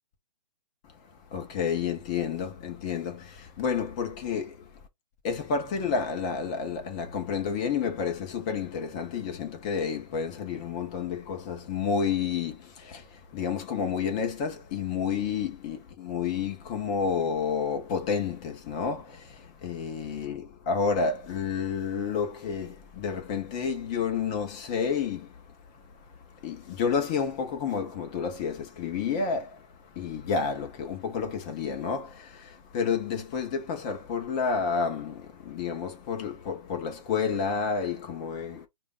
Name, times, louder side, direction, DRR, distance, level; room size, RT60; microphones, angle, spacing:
voice 1, 0.9-4.8 5.2-38.7, left 6 dB, 10° left, 0.3 m, -30 dB
4.9 x 2.2 x 3.5 m
hypercardioid pair, 155°, 21 cm